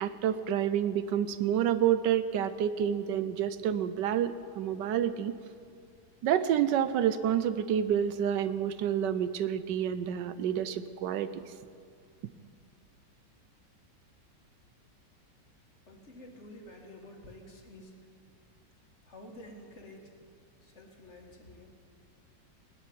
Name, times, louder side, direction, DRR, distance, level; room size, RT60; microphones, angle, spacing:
voice 1, 0.0-5.3 6.2-11.4, right 9 dB, 80° right, 12 dB, 1.3 m, -29 dB
voice 2, 15.9-18.1 19.1-20.2 20.6-21.7, left 1 dB, 40° left, 1 dB, 1.9 m, -50 dB
19.5 x 7.1 x 9.6 m, 2.3 s
omnidirectional pair, 1.9 m